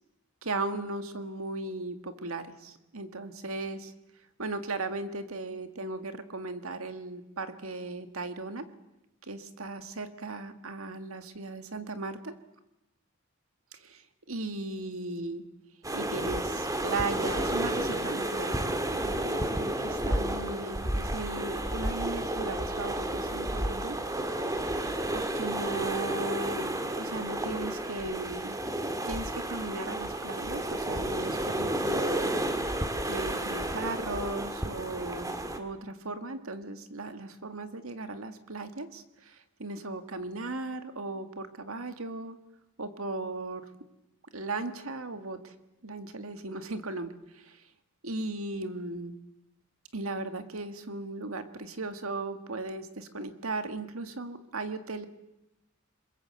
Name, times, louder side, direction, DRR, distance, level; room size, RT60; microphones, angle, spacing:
voice 1, 0.4-3.9 4.4-8.6 9.3-12.3 13.7-14.0 14.3-15.4 15.9-18.6 19.0-24.0 24.5-24.6 25.1-26.7 27.0-28.6 29.0-32.3 33.0-42.4 42.8-43.7 44.3-45.5 45.8-47.6 48.0-49.2 49.9-55.1, right 2 dB, 80° right, 8 dB, 2.0 m, -37 dB
sound 1, 15.8-35.6, right 1 dB, 15° right, 2.0 m, -31 dB
27.5 x 22.0 x 7.9 m, 0.92 s
head